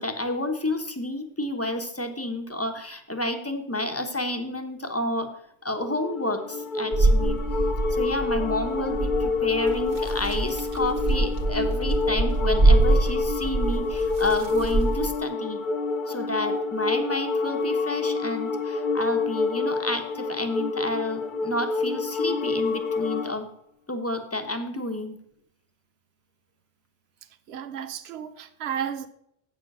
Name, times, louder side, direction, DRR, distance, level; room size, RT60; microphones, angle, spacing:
voice 1, 0.0-5.3 5.6-7.4 7.9-15.6 16.1-23.5 23.9-25.2, left 1 dB, 15° left, 1.0 m, -30 dB
sound 1, 5.8-23.4, left 4 dB, 55° left, 0.8 m, -28 dB
sound 2, 6.9-15.1, right 2 dB, 60° right, 1.4 m, -24 dB
voice 2, 27.5-29.1, right 8 dB, 80° right, 1.0 m, -33 dB
8.5 x 6.8 x 6.1 m
omnidirectional pair, 1.1 m